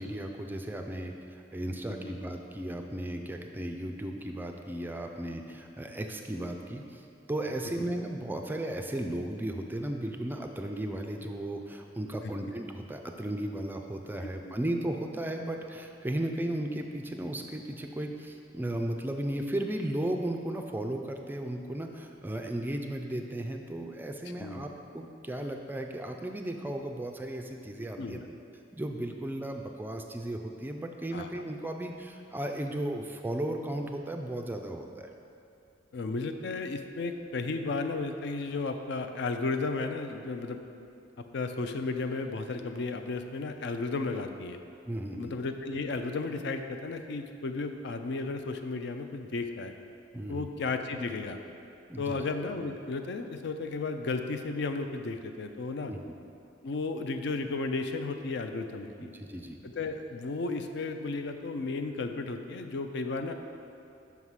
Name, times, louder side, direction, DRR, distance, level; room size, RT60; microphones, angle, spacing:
voice 1, 0.0-28.3 28.7-35.1 44.8-45.3 50.1-50.5 51.9-52.2 55.9-56.0 59.0-59.6, right 1 dB, 10° right, 4 dB, 0.3 m, -35 dB
voice 2, 35.9-40.6 41.3-44.6 45.2-49.7 50.3-51.4 52.0-55.9 56.6-59.1 59.6-63.3, left 3 dB, 65° left, 7 dB, 0.4 m, -34 dB
5.8 x 4.7 x 5.6 m, 2.6 s
head